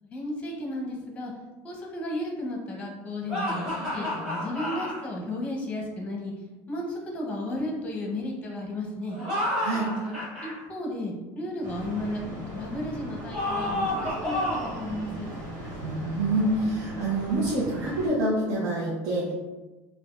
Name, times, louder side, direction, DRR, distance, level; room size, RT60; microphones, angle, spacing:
voice 1, 0.0-1.3 1.6-3.6 3.9-6.3 6.7-9.2 10.4-15.3, left 1 dB, 15° left, -1 dB, 0.8 m, -33 dB
sound 1, 3.3-5.0 9.1-10.5 13.3-14.8, left 1 dB, 10° right, 1.3 m, -30 dB
sound 2, 11.6-18.1, right 1 dB, 45° right, 1.5 m, -39 dB
voice 2, 15.8-19.3, right 1 dB, 75° right, -6 dB, 0.8 m, -26 dB
5.0 x 2.4 x 2.4 m, 1.2 s
cardioid pair, 160°, 8 cm